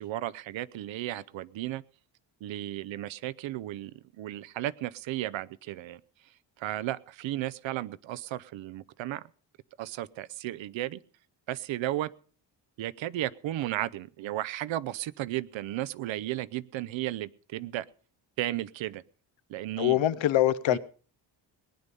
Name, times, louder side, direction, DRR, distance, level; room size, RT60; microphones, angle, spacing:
voice 1, 0.0-1.8 2.4-6.0 6.6-9.3 9.8-11.0 11.5-12.1 12.8-17.8 18.4-19.0 19.5-20.0 20.7-20.8, right 14 dB, 80° right, 0.7 m, -34 dB
voice 2, 19.8-20.8, left 13 dB, 90° left, 0.9 m, -24 dB
19.5 x 9.9 x 5.4 m
wide cardioid pair, 165°, 45 cm